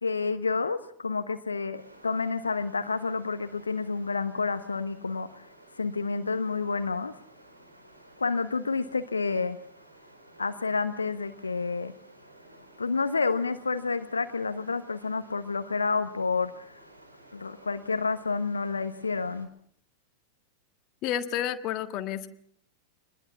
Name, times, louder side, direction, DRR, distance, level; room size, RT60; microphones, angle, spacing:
voice 1, 0.0-5.5 5.8-7.1 8.2-9.6 10.4-11.9 12.8-16.7 17.3-19.5, left 4 dB, 75° left, 10 dB, 1.1 m, -29 dB
sound 1, 1.7-19.4, right 1 dB, 85° right, 4.5 m, -54 dB
voice 2, 21.0-22.3, left 10 dB, 40° left, 9 dB, 1.6 m, -30 dB
25.0 x 20.5 x 7.2 m, 0.62 s
figure-of-eight pair, 90°, 0 cm